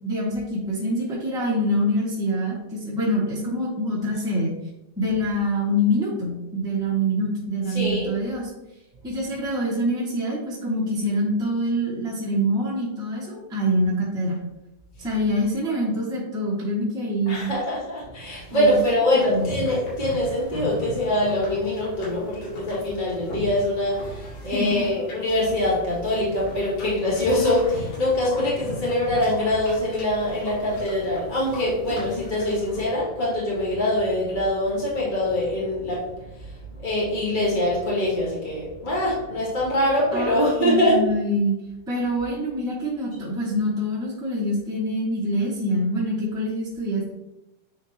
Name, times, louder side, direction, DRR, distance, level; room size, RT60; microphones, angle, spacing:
voice 1, 0.0-4.5 5.0-8.5 9.0-14.4 15.0-17.5 18.5-18.8 19.0-19.5 24.4-24.9 40.1-41.5 41.9-47.1, equal, 5° right, -6 dB, 0.5 m, -25 dB
voice 2, 7.7-8.1 17.3-36.2 36.8-41.0, left 1 dB, 35° left, -7 dB, 0.7 m, -24 dB
sound 1, 19.1-32.9, left 2 dB, 80° left, 3.8 m, -39 dB
8.0 x 4.2 x 2.9 m, 0.92 s
omnidirectional pair, 3.8 m